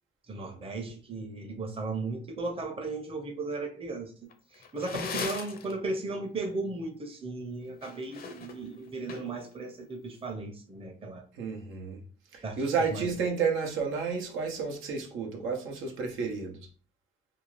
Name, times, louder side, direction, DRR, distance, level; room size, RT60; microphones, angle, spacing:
voice 1, 0.3-4.1 4.5-11.2 12.4-13.1, right 3 dB, 30° right, 0.7 m, -36 dB
sound 1, 4.3-5.7 7.7-9.5, left 5 dB, 50° left, 0.6 m, -38 dB
voice 2, 11.3-12.0 12.3-16.6, right 5 dB, 90° right, 0.8 m, -31 dB
2.7 x 2.3 x 3.1 m
cardioid pair, 90°, 20 cm